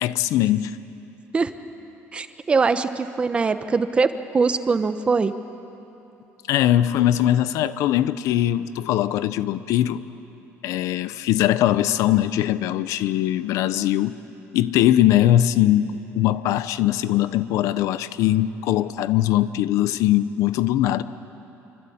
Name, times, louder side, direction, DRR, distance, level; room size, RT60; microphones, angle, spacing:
voice 1, 0.0-0.8 6.5-10.0 10.6-14.2 14.5-21.0, left 13 dB, 75° left, 14 dB, 0.8 m, -21 dB
voice 2, 2.1-5.3, right 4 dB, 20° right, 10 dB, 0.9 m, -22 dB
27.5 x 24.5 x 8.7 m, 3.0 s
cardioid pair, 165°, 5 cm